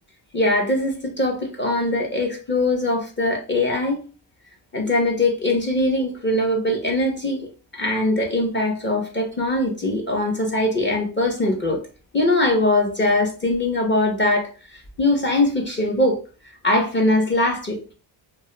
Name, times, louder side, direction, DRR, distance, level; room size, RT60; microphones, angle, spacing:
voice 1, 0.3-4.0 4.7-7.4 7.7-11.8 12.1-14.5 15.0-16.2 16.6-17.8, left 2 dB, 25° left, 0.7 m, -21 dB
2.2 x 2.1 x 3.0 m
cardioid pair, 85°, 44 cm